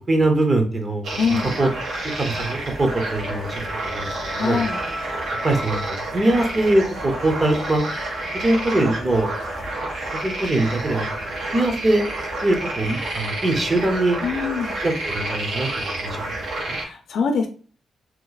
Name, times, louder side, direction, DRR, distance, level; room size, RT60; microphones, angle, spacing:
voice 1, 0.1-1.7 2.2-4.6 5.4-7.9 8.3-9.3 10.1-11.1 11.5-12.0 12.4-14.2 14.8-16.2 16.7-16.8, right 2 dB, 30° right, 4 dB, 0.8 m, -22 dB
sound 1, 1.0-16.8, right 2 dB, 70° right, 1.1 m, -29 dB
voice 2, 1.2-1.5 4.3-4.8 14.2-14.7 16.6-17.5, left 5 dB, 75° left, 4 dB, 0.5 m, -24 dB
sound 2, 2.3-10.8, equal, 5° left, 0.5 m, -38 dB
2.9 x 2.2 x 3.9 m, 0.40 s
cardioid pair, 100°, 0 cm